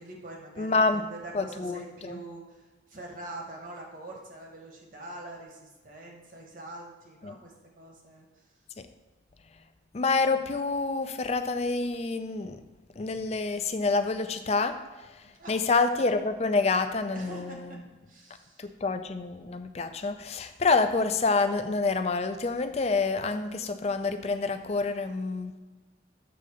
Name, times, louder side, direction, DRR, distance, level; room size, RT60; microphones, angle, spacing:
voice 1, 0.0-8.3 15.4-15.5 17.1-17.8 18.1-18.7, right 2 dB, 45° right, 0 dB, 1.3 m, -44 dB
voice 2, 0.6-1.0 1.3-2.2 7.2-7.4 8.8-8.9 9.9-12.6 13.0-14.8 15.1-17.8 18.6-25.6, left 3 dB, 35° left, 9 dB, 0.4 m, -27 dB
6.8 x 3.8 x 6.4 m, 1.2 s
head